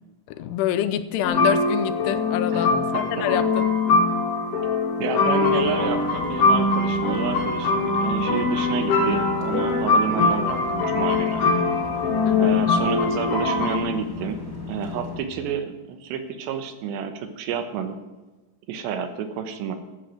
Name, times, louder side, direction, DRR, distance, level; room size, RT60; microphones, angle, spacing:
voice 1, 0.3-3.8 12.3-12.6, left 11 dB, 80° left, 11 dB, 2.6 m, -27 dB
sound 1, 1.2-13.8, left 3 dB, 60° left, 1.5 m, -22 dB
voice 2, 2.5-3.3 5.0-11.4 12.4-14.4 14.7-18.0 18.7-19.8, right 7 dB, 85° right, 8 dB, 3.3 m, -30 dB
sound 2, 5.4-15.2, left 4 dB, 25° left, 0.4 m, -36 dB
13.5 x 6.8 x 7.6 m, 1.2 s
omnidirectional pair, 4.9 m